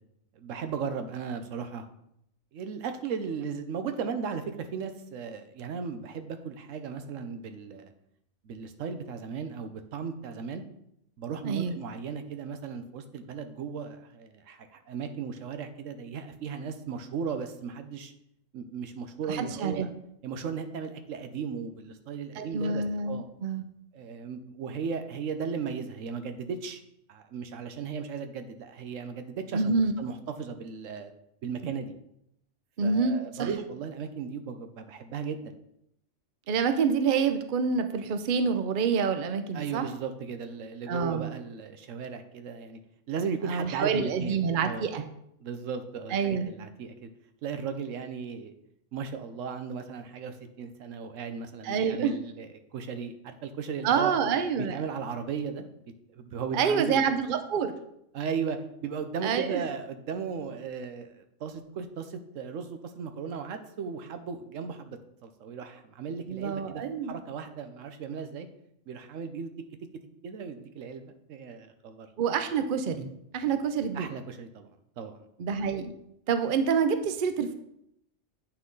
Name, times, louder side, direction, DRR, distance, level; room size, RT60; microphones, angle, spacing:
voice 1, 0.4-1.9 2.5-7.9 8.4-10.6 11.2-18.1 18.5-19.9 20.2-23.3 23.9-26.8 27.1-31.1 31.4-31.9 32.8-35.5 39.5-42.8 43.1-44.9 45.4-47.1 47.4-48.5 48.9-54.1 54.6-55.7 56.1-57.0 58.1-68.5 68.9-69.5 70.2-72.1 73.5-73.6 73.9-74.7 75.0-75.2, right 6 dB, 85° right, 8 dB, 1.1 m, -36 dB
voice 2, 11.4-11.7 19.3-19.9 22.4-23.7 29.5-29.9 32.8-33.5 36.5-39.9 40.9-41.3 43.4-45.0 46.1-46.5 51.6-52.2 53.8-54.8 56.5-57.7 59.2-59.6 66.3-67.1 72.2-74.1 75.4-75.9 76.3-77.5, right 6 dB, 50° right, 8 dB, 0.7 m, -27 dB
8.5 x 5.9 x 3.8 m, 0.77 s
omnidirectional pair, 1.3 m